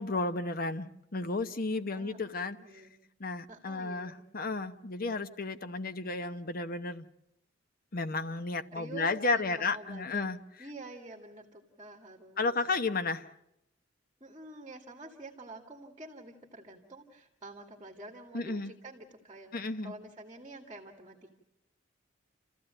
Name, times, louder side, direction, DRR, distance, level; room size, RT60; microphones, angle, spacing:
voice 1, 0.0-2.6 3.2-7.1 7.9-10.4 12.4-13.3 18.3-18.7 19.5-19.9, left 3 dB, 50° left, 1.0 m, -33 dB
voice 2, 2.6-2.9 3.5-4.3 8.7-10.2 10.6-12.6 14.2-21.4, right 2 dB, 25° right, 2.2 m, -48 dB
29.5 x 15.0 x 9.0 m
head